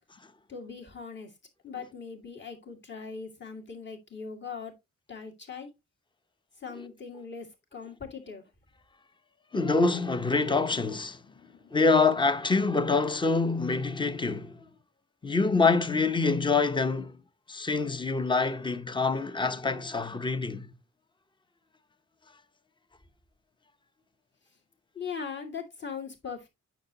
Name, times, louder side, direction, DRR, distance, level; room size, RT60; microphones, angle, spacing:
voice 1, 0.5-1.3 1.6-4.7 5.1-5.7 6.6-8.5 11.3-11.8 24.9-26.5, left 5 dB, 35° left, 2.3 m, -40 dB
voice 2, 9.5-11.2 11.7-14.6 15.2-17.2 17.5-20.7, left 4 dB, 15° left, 0.7 m, -26 dB
9.2 x 6.6 x 2.8 m
wide cardioid pair, 140°, 30 cm